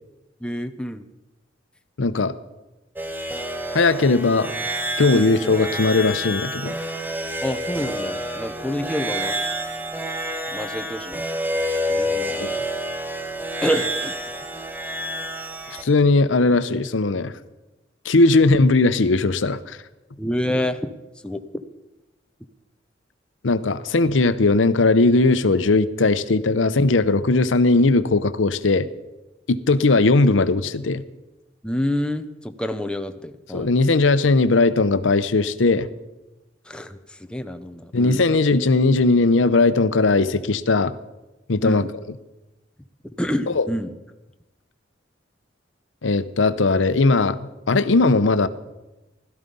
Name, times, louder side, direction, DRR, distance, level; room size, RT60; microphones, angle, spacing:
voice 1, 0.4-1.0 5.1-5.3 7.4-9.4 10.5-11.2 11.9-12.6 13.6-14.2 20.2-20.9 21.2-21.6 31.6-33.7 36.7-38.2 41.6-41.9 43.2-43.9, equal, 5° left, 8 dB, 0.7 m, -28 dB
voice 2, 2.0-2.3 3.7-4.5 5.0-6.7 12.4-12.6 15.8-17.3 18.0-19.8 23.4-28.9 29.5-31.0 33.5-35.9 37.9-40.9 41.5-41.8 43.5-43.7 46.0-48.5, left 3 dB, 85° left, 13 dB, 0.7 m, -18 dB
sound 1, 3.0-15.8, equal, 10° right, 1.2 m, -28 dB
16.5 x 13.0 x 5.4 m, 1.0 s
head